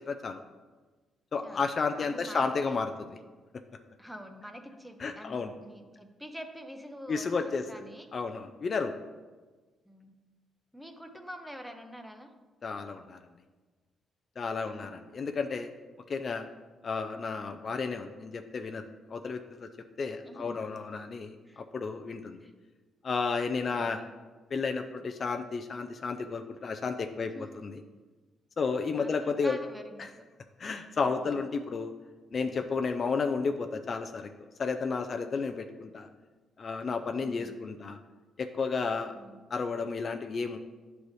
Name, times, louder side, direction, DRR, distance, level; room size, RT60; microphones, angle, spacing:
voice 1, 0.1-0.4 1.3-2.9 5.0-5.5 7.1-7.7 8.1-8.9 12.6-13.2 14.4-15.7 16.1-16.5 16.8-18.8 19.1-19.7 20.0-22.4 23.0-24.0 24.5-27.3 27.6-27.8 28.6-29.6 30.0-30.1 30.6-31.9 32.3-36.1 36.6-38.0 38.4-39.1 39.5-40.6, left 4 dB, 45° left, 6 dB, 0.4 m, -32 dB
voice 2, 2.0-2.8 4.0-8.2 9.8-10.2 10.7-12.3 14.6-15.0 16.5-16.6 20.2-20.7 21.5-21.6 22.4-22.5 23.7-24.0 27.3-27.5 28.9-30.3 37.2-37.6 39.0-39.5, equal, ahead, 5 dB, 0.7 m, -46 dB
10.0 x 4.0 x 3.2 m, 1.3 s
cardioid pair, 90°, 0 cm